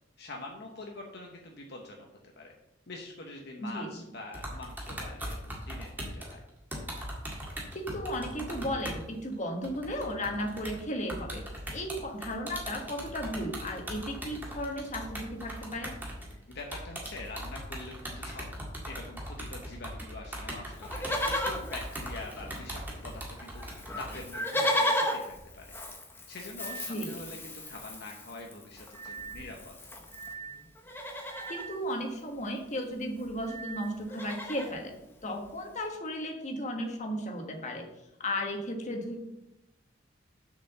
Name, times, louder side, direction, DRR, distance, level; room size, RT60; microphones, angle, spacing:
voice 1, 0.2-2.1 2.4-2.5 2.9-6.4 16.3-18.5 18.9-23.6 24.0-25.8 26.3-29.8, left 2 dB, 55° left, 0 dB, 1.0 m, -44 dB
voice 2, 3.6-4.0 7.7-11.4 11.7-15.9 26.9-27.2 31.5-34.9 35.2-37.8 38.2-39.2, equal, 35° left, 2 dB, 1.4 m, -35 dB
sound 1, 4.3-9.0 9.3-9.4 9.6-24.2, equal, 10° right, 1.8 m, -39 dB
Livestock farm animals working animals, 20.8-22.8 23.1-23.2 23.4-30.3 30.8-31.7 32.9-33.0 33.2-33.5 33.8-34.8 35.4-35.5, left 1 dB, 10° left, 0.9 m, -35 dB
sound 2, 26.6-26.9 28.9-29.5 30.1-30.6 31.3-31.8 33.4-33.9, right 5 dB, 25° right, 1.4 m, -42 dB
7.1 x 5.0 x 6.7 m, 0.89 s
head